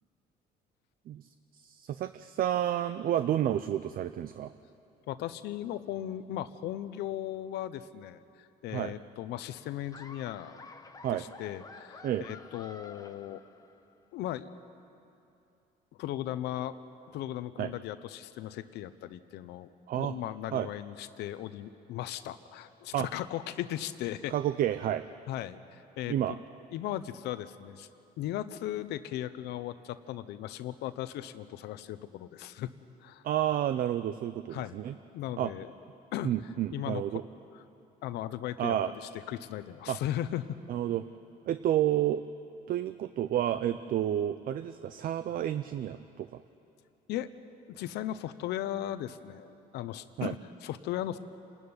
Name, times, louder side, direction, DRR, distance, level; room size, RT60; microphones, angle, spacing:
voice 1, 1.1-4.5 8.7-8.9 11.0-11.3 12.0-12.3 17.6-17.7 19.9-20.1 20.5-20.7 22.9-23.1 24.3-25.1 26.1-26.3 33.2-34.9 35.4-35.5 36.2-37.2 38.6-38.9 39.9-40.0 40.7-41.0 41.5-42.2 42.7-46.4 50.2-50.3, right 11 dB, 60° right, 12 dB, 0.6 m, -30 dB
voice 2, 5.1-10.6 11.1-13.4 14.1-14.5 16.0-16.8 17.1-24.3 25.3-26.4 26.7-27.9 28.2-32.7 33.0-33.2 34.5-34.8 35.1-35.7 36.1-36.3 36.7-37.2 37.5-37.6 38.0-40.6 47.1-47.3 47.7-51.2, left 12 dB, 80° left, 12 dB, 0.9 m, -37 dB
Laughter, 9.9-13.9, left 3 dB, 20° left, 1.2 m, -50 dB
27.5 x 13.0 x 9.7 m, 2.7 s
cardioid pair, 110°, 17 cm